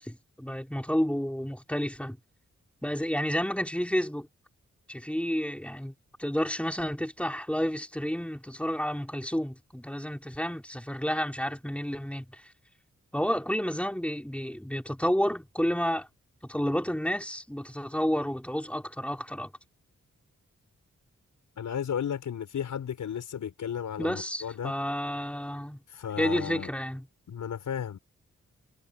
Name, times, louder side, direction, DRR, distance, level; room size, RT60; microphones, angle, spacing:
voice 1, 0.0-2.2 2.8-4.3 4.9-5.9 6.2-12.4 13.1-16.1 16.5-19.5 24.0-25.8 26.2-27.1, equal, 5° left, 4.6 m, -30 dB
voice 2, 21.6-24.7 25.9-26.7 27.3-28.0, left 8 dB, 85° left, 5.9 m, -34 dB
cardioid pair, 50°, 30 cm